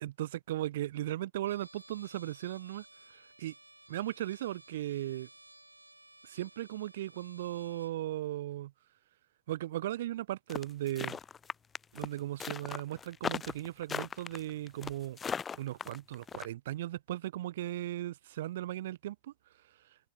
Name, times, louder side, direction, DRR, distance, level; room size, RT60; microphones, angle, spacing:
voice 1, 0.0-2.9 3.1-3.5 3.9-5.3 6.2-8.7 9.5-11.2 11.9-15.2 15.5-19.3, right 14 dB, 55° right, 0.7 m, -37 dB
Trumpet, 1.4-8.0, right 1 dB, 85° right, 5.6 m, -57 dB
sound 1, 10.5-16.5, left 6 dB, 20° left, 0.7 m, -37 dB
figure-of-eight pair, 90°, 0 cm